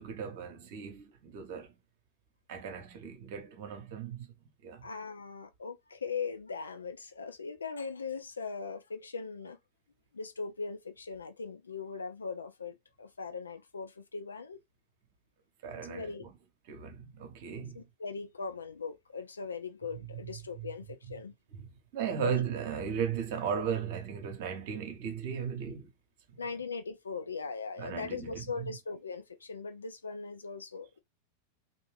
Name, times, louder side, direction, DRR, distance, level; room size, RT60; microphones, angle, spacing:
voice 1, 0.0-1.7 2.5-4.3 4.6-4.8 15.6-16.3 16.7-17.8 20.2-20.7 21.5-25.9 27.8-28.8, right 7 dB, 50° right, 0.8 m, -36 dB
voice 2, 4.8-9.6 10.1-14.6 15.9-16.3 17.7-21.3 22.2-22.3 26.4-31.0, left 5 dB, 75° left, 0.5 m, -40 dB
2.6 x 2.0 x 3.2 m
figure-of-eight pair, 90°, 0 cm